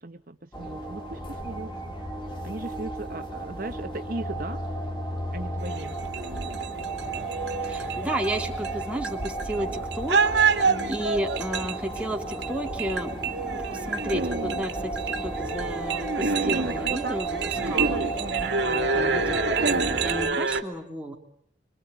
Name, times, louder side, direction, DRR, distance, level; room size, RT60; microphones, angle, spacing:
voice 1, 0.0-1.9 2.4-4.8 5.3-6.0 10.6-11.0 17.6-17.8 18.3-18.6, right 2 dB, 50° right, 7 dB, 1.1 m, -38 dB
sound 1, 0.5-20.2, left 1 dB, 30° left, 3.4 m, -50 dB
sound 2, 0.5-20.3, right 2 dB, 10° left, 2.6 m, -34 dB
sound 3, 5.6-20.6, right 4 dB, 70° right, 2.2 m, -28 dB
voice 2, 7.6-10.2 10.5-13.2 13.4-18.0 18.6-21.1, right 1 dB, 5° right, 1 dB, 3.1 m, -33 dB
25.5 x 24.0 x 9.3 m, 0.69 s
head